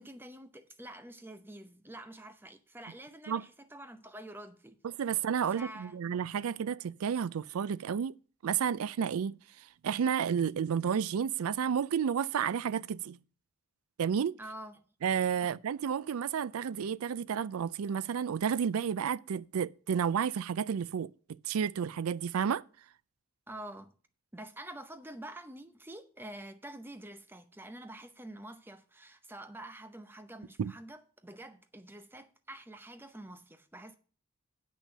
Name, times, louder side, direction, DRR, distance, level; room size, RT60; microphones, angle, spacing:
voice 1, 0.0-4.8 5.5-6.0 14.4-14.9 15.4-15.5 23.5-23.9 24.3-34.0, right 1 dB, 10° right, 0.7 m, -47 dB
voice 2, 4.8-8.1 8.4-9.3 9.8-13.2 14.0-14.3 15.0-21.1 21.4-22.6 30.6-30.7, right 7 dB, 80° right, 0.4 m, -31 dB
8.3 x 6.1 x 6.6 m
head